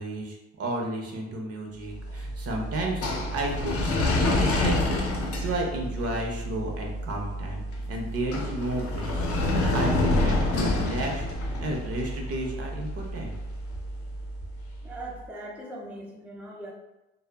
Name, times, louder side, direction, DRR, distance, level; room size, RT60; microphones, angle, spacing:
voice 1, 0.0-7.6 7.9-13.3, right 1 dB, 50° right, 0 dB, 0.7 m, -32 dB
sound 1, 1.9-15.0, left 1 dB, 50° left, 0.6 m, -28 dB
voice 2, 14.8-16.7, right 1 dB, 5° right, -2 dB, 0.4 m, -40 dB
2.1 x 2.0 x 3.3 m, 0.98 s
cardioid pair, 90°, 30 cm